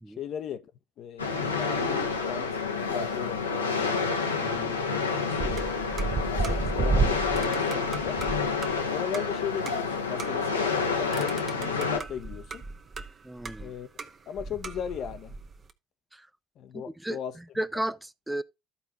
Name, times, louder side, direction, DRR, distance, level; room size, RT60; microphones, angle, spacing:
voice 1, 0.2-0.7 1.0-2.6 2.9-4.1 4.7-5.7 6.1-8.3 8.9-12.6 13.6-13.9 14.3-15.4 16.6-17.4, left 8 dB, 55° left, 0.8 m, -37 dB
sound 1, 1.2-12.0, left 5 dB, 90° left, 1.0 m, -29 dB
voice 2, 4.4-4.8 13.2-13.7 16.1-16.3 16.7-17.2 17.6-18.4, right 1 dB, 10° right, 0.6 m, -34 dB
sound 2, 5.4-8.8 9.1-9.2 9.7-9.8 10.2-10.5 11.1-13.1 13.4-14.1 14.4-15.7, right 4 dB, 35° right, 1.0 m, -32 dB
13.5 x 4.5 x 3.7 m
figure-of-eight pair, 55°, 0 cm